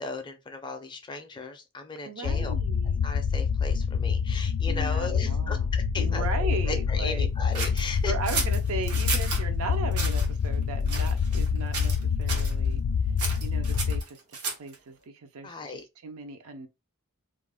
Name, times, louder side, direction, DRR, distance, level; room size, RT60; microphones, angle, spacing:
voice 1, 0.0-2.5 3.0-8.1 15.4-15.8, left 3 dB, 20° left, 0.4 m, -37 dB
voice 2, 2.1-3.0 4.7-7.3 8.0-11.9 12.2-12.8 13.4-14.2 14.6-16.7, right 3 dB, 70° right, 0.5 m, -37 dB
sound 1, 2.2-14.0, left 6 dB, 90° left, 0.3 m, -26 dB
sound 2, 7.5-9.4 9.9-10.3 10.9-11.5 11.7-12.0 12.3-12.5 13.2-14.8, right 4 dB, 90° right, 0.8 m, -33 dB
2.4 x 2.0 x 3.4 m
head